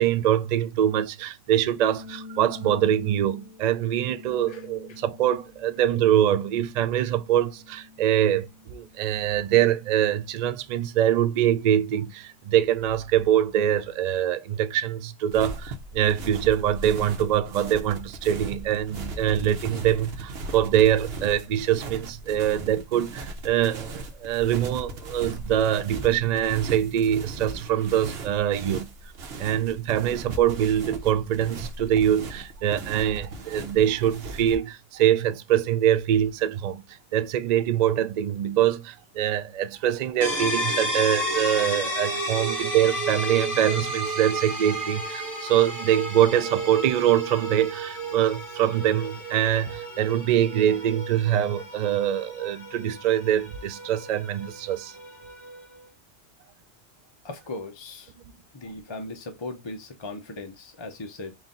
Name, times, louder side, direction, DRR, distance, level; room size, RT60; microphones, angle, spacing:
voice 1, 0.0-28.9 29.4-54.9, right 11 dB, 75° right, 0.4 m, -24 dB
sound 1, 1.6-12.5, left 3 dB, 80° left, 1.0 m, -47 dB
sound 2, 15.3-34.6, right 2 dB, 60° right, 0.9 m, -38 dB
sound 3, 40.2-55.8, right 1 dB, ahead, 2.1 m, -32 dB
voice 2, 57.2-58.1 58.5-61.4, left 2 dB, 30° left, 0.6 m, -38 dB
4.1 x 2.6 x 3.7 m
omnidirectional pair, 1.3 m